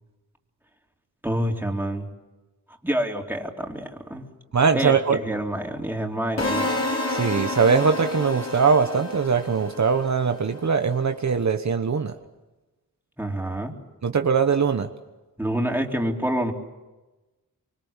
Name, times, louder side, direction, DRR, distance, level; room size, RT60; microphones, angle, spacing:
voice 1, 1.2-2.1 2.8-4.3 4.7-6.8 13.2-13.7 15.4-16.5, right 1 dB, 5° right, 1 dB, 3.7 m, -27 dB
voice 2, 4.5-5.2 7.1-12.1 14.0-14.9, right 5 dB, 55° right, 6 dB, 1.2 m, -21 dB
sound 1, 6.4-10.4, left 2 dB, 50° left, 6.0 m, -29 dB
25.0 x 24.0 x 7.4 m, 1.1 s
cardioid pair, 65°, 34 cm